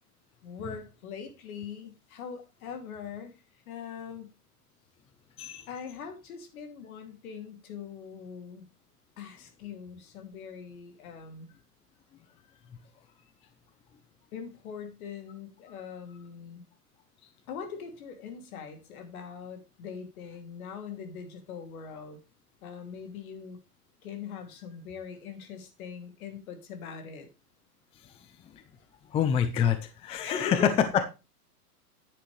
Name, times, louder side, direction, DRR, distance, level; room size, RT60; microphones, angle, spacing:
voice 1, 0.4-3.4 3.7-4.3 5.7-8.6 9.2-11.5 14.3-16.7 17.5-22.2 22.6-23.6 24.0-27.3 30.2-31.0, left 6 dB, 60° left, 5 dB, 3.0 m, -41 dB
voice 2, 29.1-30.7, left 8 dB, 15° left, 10 dB, 0.5 m, -26 dB
10.0 x 8.7 x 3.3 m, 0.28 s
hypercardioid pair, 125°, 48 cm